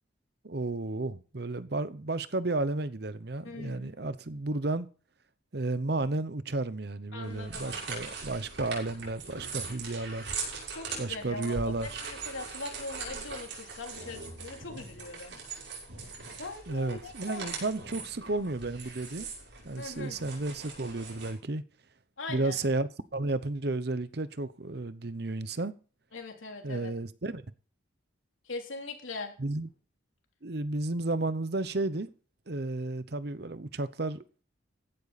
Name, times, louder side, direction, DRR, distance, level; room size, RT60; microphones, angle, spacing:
voice 1, 0.4-4.9 5.5-10.3 11.0-12.0 16.7-19.3 19.6-21.6 22.3-25.7 26.6-27.4 29.4-29.7 30.4-32.1 32.5-34.4, right 2 dB, 55° right, 0.8 m, -32 dB
voice 2, 3.4-4.1 7.1-8.0 10.7-11.6 11.8-15.4 16.4-17.5 19.8-20.2 22.2-22.6 26.1-26.9 28.5-29.4, left 3 dB, 85° left, 3.4 m, -41 dB
sound 1, 7.2-21.3, right 4 dB, 70° right, 6.6 m, -41 dB
15.5 x 12.0 x 4.2 m
head